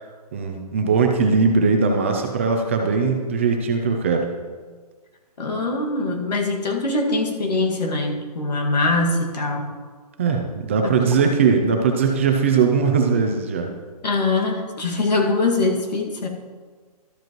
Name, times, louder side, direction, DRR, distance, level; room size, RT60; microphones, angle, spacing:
voice 1, 0.3-4.3 10.2-13.7, right 5 dB, 20° right, 3 dB, 0.5 m, -20 dB
voice 2, 5.4-9.7 10.8-10.9 14.0-16.3, left 2 dB, 85° left, 1 dB, 2.0 m, -22 dB
12.5 x 7.5 x 3.0 m, 1.5 s
hypercardioid pair, 170°, 21 cm